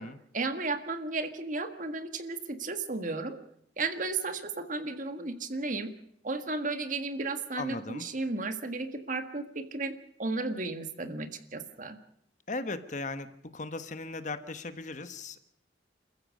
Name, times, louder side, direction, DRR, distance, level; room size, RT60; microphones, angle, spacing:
voice 1, 0.3-3.4 3.8-5.9 6.2-12.0, right 3 dB, 45° right, 8 dB, 1.7 m, -34 dB
voice 2, 7.6-8.0 12.5-13.3 13.5-15.4, left 3 dB, 45° left, 10 dB, 1.3 m, -37 dB
28.0 x 14.5 x 6.5 m, 0.72 s
head